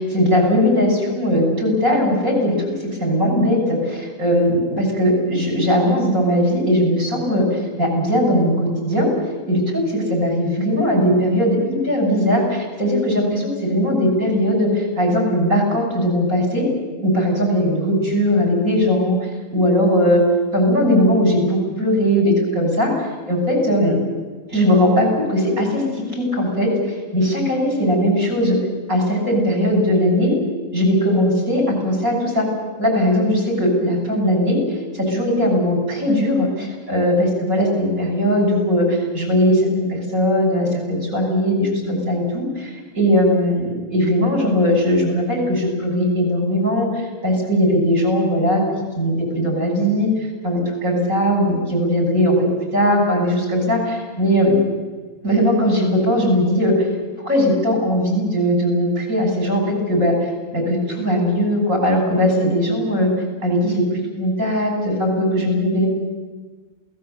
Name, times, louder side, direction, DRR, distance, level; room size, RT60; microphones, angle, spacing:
voice 1, 0.0-2.6 3.0-9.1 9.5-16.6 17.0-19.2 19.5-20.2 20.5-22.9 23.3-24.0 24.5-28.6 28.9-30.4 30.7-32.5 32.8-34.6 34.9-48.6 49.0-50.1 50.4-52.5 52.7-54.5 55.2-56.9 57.2-60.1 60.5-63.1 63.4-63.8 64.2-65.9, equal, 70° right, 2 dB, 7.1 m, -19 dB
27.5 x 18.0 x 8.1 m, 1.4 s
omnidirectional pair, 1.5 m